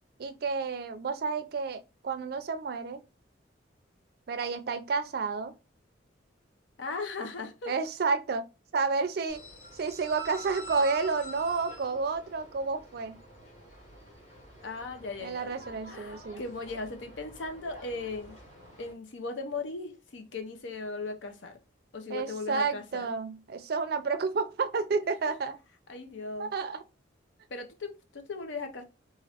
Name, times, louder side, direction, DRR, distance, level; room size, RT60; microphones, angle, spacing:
voice 1, 0.2-3.0 4.3-5.5 7.7-8.5 8.7-9.4 9.7-13.1 15.2-16.4 22.1-25.6 26.4-26.8, right 4 dB, 55° right, 0.4 m, -30 dB
voice 2, 6.8-7.7 14.6-15.5 15.9-18.4 18.8-21.6 21.9-23.1 25.0-25.3 25.9-26.5 27.5-28.8, left 3 dB, 80° left, 0.6 m, -38 dB
sound 1, 9.3-18.9, right 2 dB, 35° left, 1.8 m, -47 dB
3.0 x 2.5 x 2.8 m
head